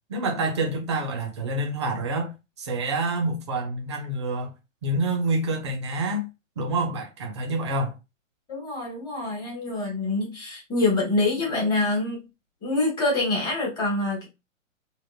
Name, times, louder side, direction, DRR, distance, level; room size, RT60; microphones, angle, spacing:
voice 1, 0.1-2.3 2.6-4.5 4.8-6.3 6.6-8.0, right 2 dB, 25° right, 0.5 m, -27 dB
voice 2, 8.5-12.2 12.6-14.3, left 2 dB, 10° left, 0.8 m, -25 dB
3.6 x 2.0 x 2.2 m
figure-of-eight pair, 125°, 39 cm